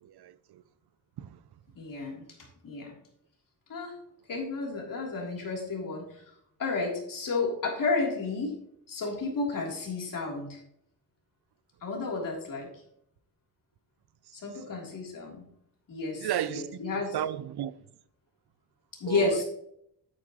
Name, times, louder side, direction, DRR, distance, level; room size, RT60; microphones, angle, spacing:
voice 1, 0.0-0.6 1.2-1.4 16.2-16.7 17.1-17.7 19.1-19.4, right 11 dB, 80° right, 0.6 m, -33 dB
voice 2, 1.8-2.2 2.6-2.9 3.7-3.9 4.3-6.2 6.6-8.5 8.9-10.6 11.8-12.7 14.3-15.5 15.9-17.2 19.0-19.4, left 3 dB, 55° left, 3.4 m, -32 dB
11.5 x 8.8 x 3.1 m
wide cardioid pair, 160°, 39 cm